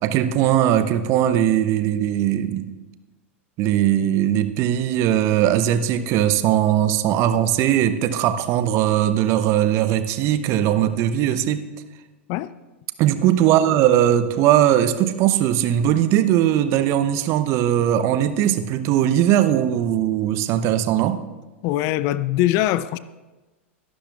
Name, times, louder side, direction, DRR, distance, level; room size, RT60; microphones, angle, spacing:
voice 1, 0.0-2.7 3.6-11.6 13.0-21.2, right 11 dB, 40° right, 11 dB, 0.8 m, -19 dB
voice 2, 21.6-23.0, left 14 dB, 45° left, 17 dB, 0.4 m, -22 dB
23.5 x 11.5 x 2.4 m, 1.2 s
figure-of-eight pair, 90°, 7 cm